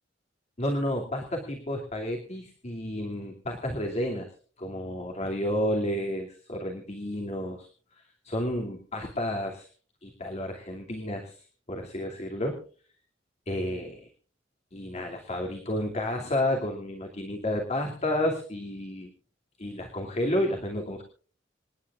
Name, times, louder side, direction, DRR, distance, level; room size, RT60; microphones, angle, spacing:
voice 1, 0.6-4.3 4.6-9.7 10.0-12.6 13.5-14.1 14.7-19.1 19.6-21.0, left 1 dB, 35° left, 1 dB, 2.7 m, -31 dB
27.0 x 11.5 x 2.5 m, 0.42 s
head